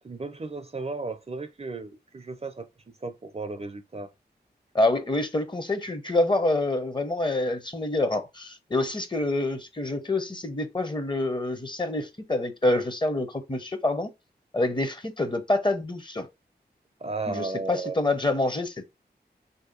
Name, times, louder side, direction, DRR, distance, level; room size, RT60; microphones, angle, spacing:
voice 1, 0.0-2.7 3.0-4.1 17.0-18.0, right 3 dB, 35° right, 0.6 m, -34 dB
voice 2, 4.7-14.1 14.5-16.3 17.3-18.9, left 2 dB, 25° left, 0.8 m, -27 dB
3.1 x 2.8 x 3.7 m
cardioid pair, 40°, 17 cm